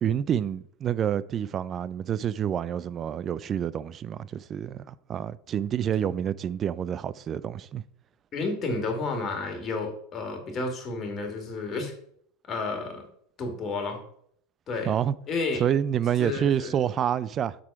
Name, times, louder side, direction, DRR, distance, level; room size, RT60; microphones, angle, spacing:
voice 1, 0.0-7.8 14.9-15.1 15.6-17.6, right 9 dB, 35° right, 0.3 m, -28 dB
voice 2, 8.3-11.9 12.5-13.1 13.4-14.0 14.7-14.9 15.3-15.6 16.2-16.7, left 3 dB, 35° left, 1.9 m, -31 dB
6.2 x 4.3 x 4.7 m
hypercardioid pair, 90°, 0 cm